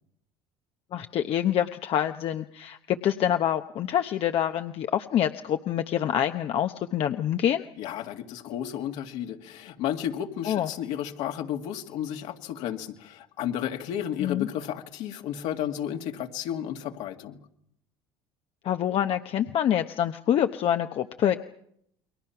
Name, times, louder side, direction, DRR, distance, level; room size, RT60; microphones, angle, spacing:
voice 1, 0.9-7.6 10.4-10.7 14.2-14.5 18.6-21.4, left 10 dB, 50° left, 6 dB, 1.0 m, -26 dB
voice 2, 7.8-17.4, left 10 dB, 70° left, 4 dB, 2.2 m, -32 dB
29.5 x 22.5 x 5.9 m, 0.73 s
supercardioid pair, 100°, 12 cm